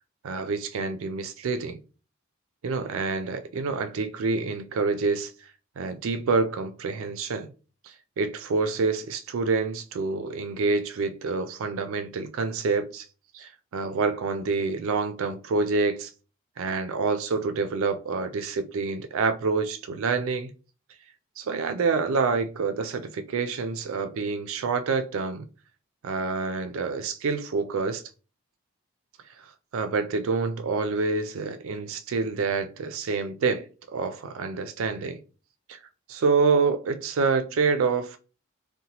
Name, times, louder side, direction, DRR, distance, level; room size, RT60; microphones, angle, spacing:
voice 1, 0.2-1.8 2.6-5.3 5.8-7.5 7.8-13.1 13.3-16.1 16.6-20.5 21.4-25.5 26.0-28.0 29.4-35.2 35.7-35.8 36.1-38.2, right 4 dB, 75° right, 0.4 m, -27 dB
2.8 x 2.1 x 2.8 m
head